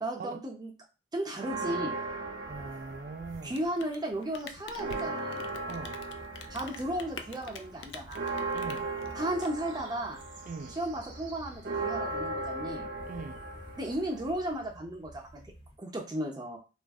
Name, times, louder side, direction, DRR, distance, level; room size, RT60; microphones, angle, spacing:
voice 1, 0.0-0.7 1.1-2.0 3.4-5.6 6.5-8.4 9.1-10.2 10.8-12.9 13.8-15.4 15.8-16.6, right 1 dB, 25° right, 0.7 m, -35 dB
sound 1, 1.4-3.7 4.1-14.6, right 3 dB, 90° right, 0.6 m, -38 dB
voice 2, 2.5-3.6 5.7-6.0 8.5-8.9 10.5-10.8 13.1-13.4, right 4 dB, 45° right, 0.3 m, -41 dB
Rain, 3.4-10.2, left 5 dB, 90° left, 0.4 m, -47 dB
sound 2, 5.3-15.8, equal, 30° left, 0.7 m, -52 dB
2.5 x 2.0 x 3.5 m
head